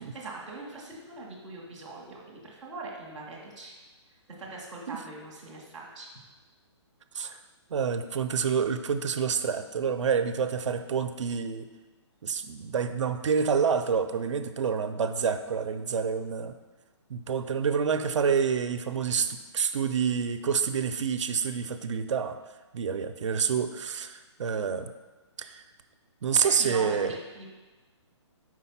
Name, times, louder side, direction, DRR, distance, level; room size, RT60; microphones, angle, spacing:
voice 1, 0.1-3.7 4.4-6.1 26.5-27.5, right 2 dB, ahead, -11 dB, 0.3 m, -41 dB
voice 2, 7.7-11.7 12.2-16.6 17.1-22.4 22.7-24.9 25.4-25.6 26.2-27.1, right 6 dB, 80° right, 8 dB, 0.5 m, -28 dB
4.8 x 3.9 x 5.7 m, 1.2 s
hypercardioid pair, 175°, 15 cm